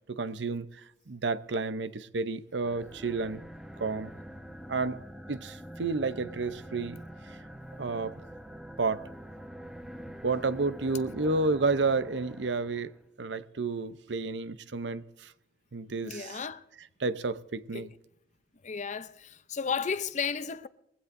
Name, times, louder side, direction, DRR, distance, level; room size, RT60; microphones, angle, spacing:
voice 1, 0.1-0.7 1.1-3.4 3.8-4.1 4.7-5.0 5.3-7.0 7.8-8.2 8.8-9.0 10.2-12.9 13.2-15.3 15.7-16.4 17.0-17.9, right 3 dB, 80° right, 0.7 m, -31 dB
sound 1, 2.5-13.0, equal, 5° right, 1.1 m, -45 dB
voice 2, 16.0-16.6 17.7-17.9 18.6-20.7, left 6 dB, 40° left, 0.6 m, -34 dB
21.5 x 16.0 x 2.6 m
head